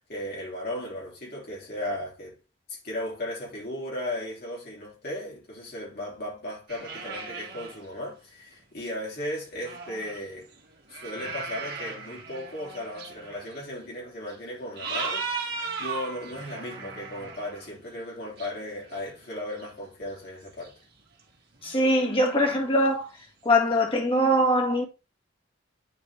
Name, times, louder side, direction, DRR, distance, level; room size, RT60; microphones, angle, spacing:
voice 1, 0.0-2.3 2.8-10.5 10.9-20.7, left 1 dB, 50° left, 3.3 m, -36 dB
sound 1, 6.7-7.8 8.5-8.6 9.5-13.6 14.3-14.4 14.8-17.7 18.4-19.8 20.2-20.3 20.6-20.7 21.2-21.3 21.5-22.6 23.7-23.8, right 4 dB, 50° right, 2.0 m, -37 dB
voice 2, 21.6-23.1 23.5-24.9, equal, 30° left, 1.9 m, -22 dB
9.7 x 4.2 x 3.4 m
head